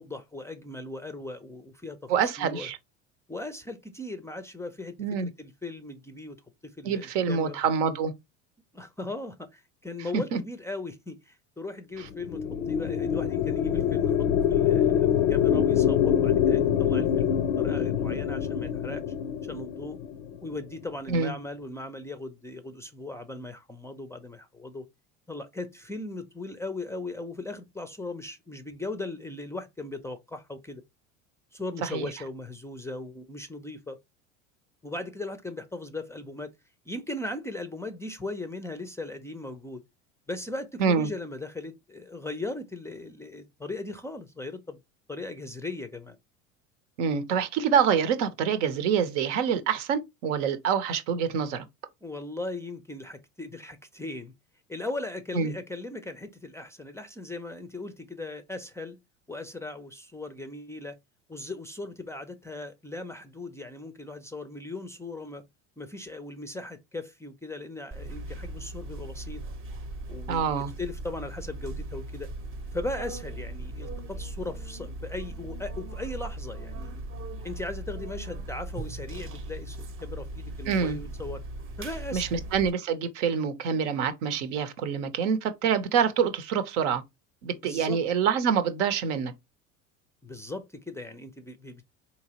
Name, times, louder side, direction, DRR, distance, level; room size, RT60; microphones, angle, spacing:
voice 1, 0.0-2.0 2.4-2.7 3.3-6.4 6.6-7.6 8.7-19.0 19.4-20.0 20.4-24.9 25.3-30.8 31.5-34.0 34.8-36.5 36.9-39.8 40.3-44.8 45.1-46.2 52.0-54.3 54.7-59.0 59.3-61.0 61.3-65.4 65.8-69.4 70.1-72.3 72.7-77.0 77.4-81.4 81.8-82.4 87.5-88.0 90.2-91.9, left 2 dB, 10° left, 0.4 m, -38 dB
voice 2, 2.1-2.8 5.0-5.3 6.8-8.1 10.1-10.4 21.1-21.3 31.8-32.1 40.8-41.1 47.0-51.6 55.3-55.5 70.3-70.7 80.6-81.0 82.1-87.0 87.4-89.3, right 7 dB, 65° right, 0.8 m, -26 dB
sound 1, 12.1-20.6, left 9 dB, 80° left, 0.5 m, -25 dB
sound 2, 67.9-82.7, right 2 dB, 35° right, 0.8 m, -38 dB
3.9 x 2.9 x 2.9 m
hypercardioid pair, 80°, 37 cm